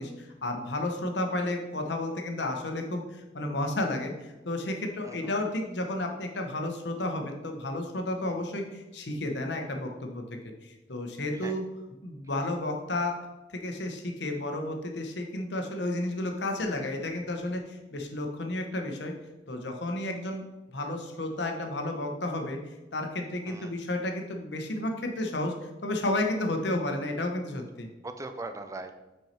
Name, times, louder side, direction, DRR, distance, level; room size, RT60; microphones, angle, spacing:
voice 1, 0.0-10.2 10.6-11.6 12.0-13.2 13.5-19.1 19.5-20.4 20.7-27.9, left 1 dB, 70° left, 3 dB, 1.0 m, -32 dB
voice 2, 5.0-5.4 8.3-8.4 11.3-11.5 23.5-23.7 28.0-28.9, right 2 dB, 20° right, 8 dB, 0.4 m, -40 dB
6.0 x 4.6 x 4.3 m, 1.0 s
head